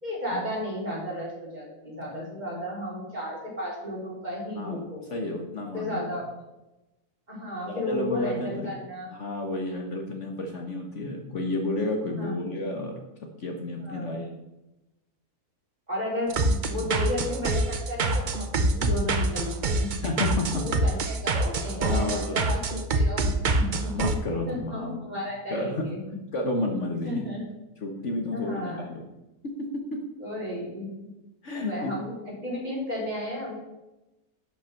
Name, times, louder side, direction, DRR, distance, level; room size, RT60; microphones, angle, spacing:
voice 1, 0.0-5.0 5.7-6.3 7.3-9.1 12.2-12.3 13.8-14.2 15.9-19.9 20.6-23.9 24.5-26.2 27.0-27.4 28.3-28.9 30.2-31.1 31.5-32.2 32.4-33.5, left 1 dB, 25° right, -5 dB, 3.9 m, -33 dB
voice 2, 5.1-6.1 7.7-8.7 9.1-12.9 13.4-14.3 16.7-16.9 20.0-21.0 21.8-22.4 23.9-25.0 25.5-25.8 26.3-27.2 27.8-29.0 29.4-30.0 31.4-31.9, left 2 dB, 50° left, 2 dB, 1.4 m, -31 dB
sound 1, 16.3-24.2, right 2 dB, 45° right, 0.6 m, -25 dB
11.0 x 6.1 x 5.8 m, 0.99 s
omnidirectional pair, 1.6 m